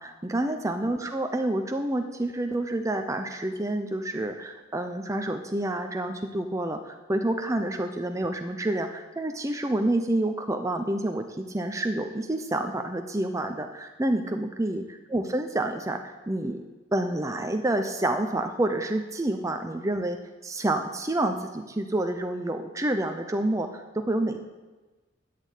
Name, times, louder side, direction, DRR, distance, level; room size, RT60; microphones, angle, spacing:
voice 1, 0.0-14.8 15.1-16.7 16.9-20.2 20.4-24.4, right 1 dB, 15° right, 5 dB, 0.7 m, -28 dB
11.0 x 8.5 x 8.3 m, 1.2 s
head